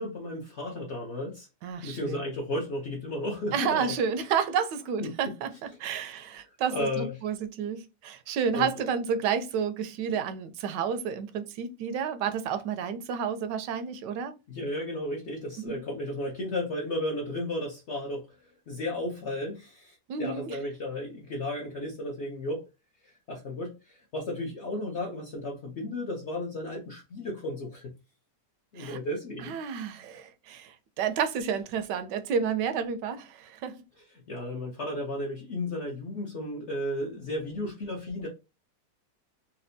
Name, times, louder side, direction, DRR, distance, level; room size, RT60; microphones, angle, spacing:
voice 1, 0.0-1.5 1.8-3.9 5.0-5.1 5.8-6.2 6.7-7.1 8.5-8.7 14.5-18.2 18.7-22.6 23.0-27.9 28.7-29.9 34.3-38.3, left 1 dB, 55° left, 0.9 m, -34 dB
voice 2, 1.6-2.2 3.5-5.5 5.8-14.3 15.6-15.8 20.1-20.6 28.8-29.0 29.4-33.8, right 7 dB, 85° right, 1.2 m, -30 dB
4.2 x 2.2 x 2.6 m
omnidirectional pair, 1.8 m